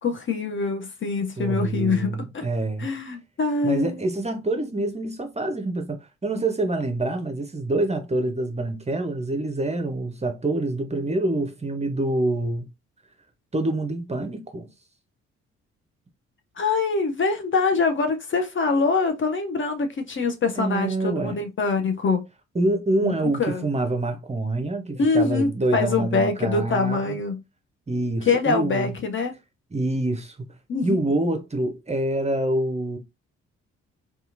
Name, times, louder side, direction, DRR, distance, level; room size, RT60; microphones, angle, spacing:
voice 1, 0.0-2.5 2.8-4.0 16.6-22.2 23.0-23.1 23.4-23.6 25.0-27.4 28.2-29.3 30.7-31.1, left 4 dB, 35° left, 0.6 m, -24 dB
voice 2, 1.4-2.9 3.6-12.7 13.5-14.7 20.6-21.4 22.5-27.2 27.9-28.9 29.7-30.5 30.8-33.0, right 2 dB, 20° right, 0.7 m, -26 dB
2.8 x 2.3 x 2.4 m
hypercardioid pair, 40°, 34 cm